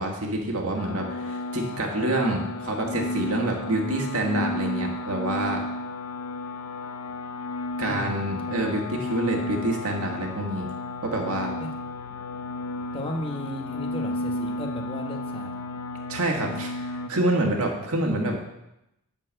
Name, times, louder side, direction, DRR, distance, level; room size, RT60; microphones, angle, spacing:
voice 1, 0.0-5.6 7.8-10.7 11.0-11.5 16.1-18.4, right 1 dB, 80° right, 1 dB, 1.6 m, -27 dB
sound 1, 0.8-17.1, left 2 dB, 75° left, 0.7 m, -33 dB
voice 2, 7.8-8.3 11.6-11.7 12.9-15.5, left 1 dB, 25° left, 2 dB, 1.1 m, -35 dB
11.0 x 4.5 x 7.5 m, 0.88 s
head